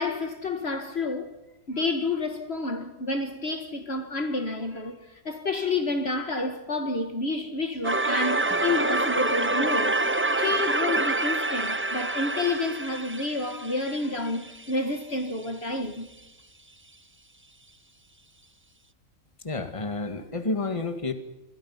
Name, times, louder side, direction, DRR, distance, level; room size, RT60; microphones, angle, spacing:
voice 1, 0.0-1.3 1.7-10.0 10.4-16.1, left 3 dB, 50° left, 1.8 m, -29 dB
sound 1, 7.8-14.7, right 2 dB, 15° right, 0.5 m, -27 dB
voice 2, 19.4-21.1, left 3 dB, 25° left, 2.0 m, -30 dB
27.5 x 23.0 x 5.7 m
omnidirectional pair, 1.4 m